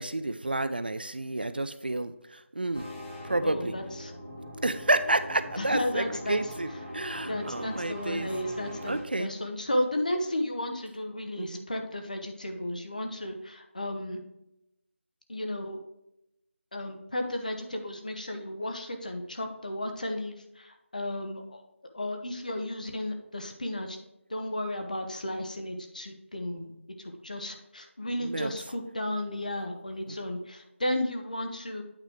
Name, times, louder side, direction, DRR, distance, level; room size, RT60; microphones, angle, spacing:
voice 1, 0.0-2.9 3.2-3.7 4.6-8.3 8.9-9.3 11.4-11.7 28.2-28.5, right 2 dB, 45° right, 12 dB, 0.4 m, -30 dB
sound 1, 2.7-9.0, equal, 5° left, 0.7 m, -41 dB
voice 2, 3.4-4.1 5.6-6.4 7.2-14.2 15.3-15.8 16.7-21.6 21.9-24.0 24.3-26.7 27.0-31.8, left 1 dB, 35° left, 5 dB, 0.9 m, -33 dB
8.8 x 3.1 x 5.0 m, 0.85 s
figure-of-eight pair, 180°, 7 cm